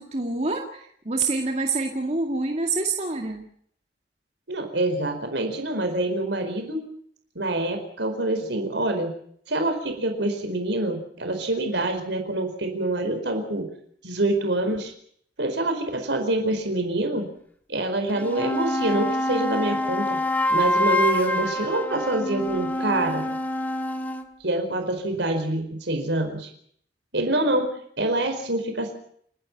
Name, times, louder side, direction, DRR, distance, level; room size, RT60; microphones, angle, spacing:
voice 1, 0.0-3.5, right 3 dB, 40° right, 3 dB, 2.1 m, -27 dB
voice 2, 4.5-6.9 7.3-9.1 9.5-13.7 14.0-14.9 15.4-17.3 17.7-20.2 20.5-23.3 24.4-26.5 27.1-27.7 28.0-28.9, right 2 dB, 90° right, 5 dB, 4.7 m, -26 dB
sound 1, 18.1-24.3, left 1 dB, 10° left, 1.5 m, -26 dB
29.5 x 10.5 x 10.0 m, 0.65 s
head